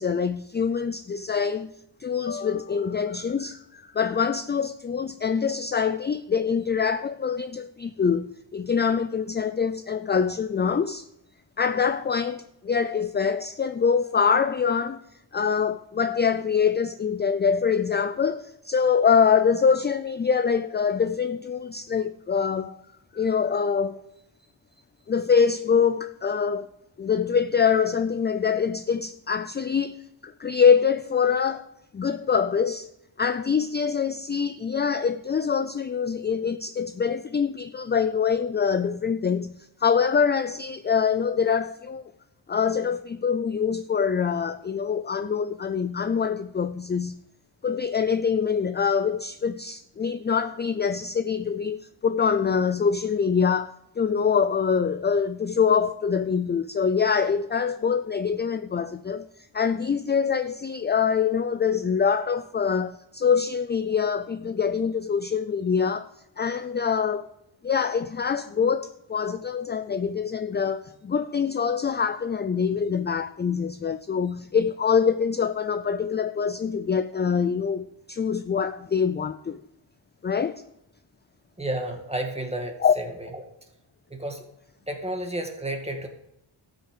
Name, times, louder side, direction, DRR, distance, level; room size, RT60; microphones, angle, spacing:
voice 1, 0.0-1.7 2.0-11.1 11.6-15.0 15.3-22.8 23.1-24.0 25.1-26.7 27.0-31.7 31.9-32.9 33.2-42.1 42.5-47.2 47.6-59.3 59.5-66.1 66.4-67.3 67.6-79.6 80.2-80.6 82.8-82.9, left 6 dB, 25° left, 0.3 m, -24 dB
voice 2, 81.6-83.1 84.1-84.4 84.9-86.1, right 1 dB, 10° right, 2.1 m, -31 dB
13.0 x 6.3 x 6.6 m
wide cardioid pair, 90°, 49 cm